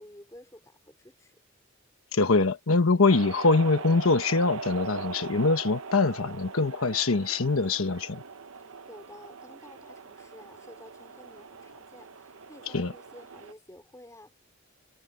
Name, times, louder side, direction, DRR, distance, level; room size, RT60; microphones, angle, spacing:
voice 1, 0.0-1.4 8.6-14.3, left 1 dB, 15° left, 4.7 m, -51 dB
voice 2, 2.1-8.2 12.7-12.9, left 3 dB, 80° left, 1.2 m, -24 dB
sound 1, 3.1-13.5, right 4 dB, 85° right, 0.9 m, -41 dB
head